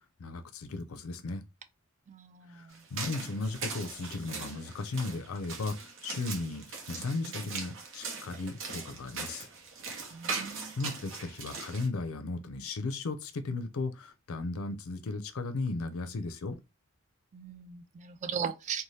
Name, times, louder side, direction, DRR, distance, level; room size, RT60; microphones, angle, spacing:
voice 1, 0.0-1.4 2.5-9.5 10.8-16.6, left 3 dB, 75° left, 0.5 m, -36 dB
voice 2, 2.1-2.7 10.1-10.7 17.3-18.8, right 7 dB, 35° right, 0.3 m, -38 dB
sound 1, 2.7-11.9, right 4 dB, 65° right, 0.8 m, -40 dB
2.7 x 2.1 x 3.2 m
head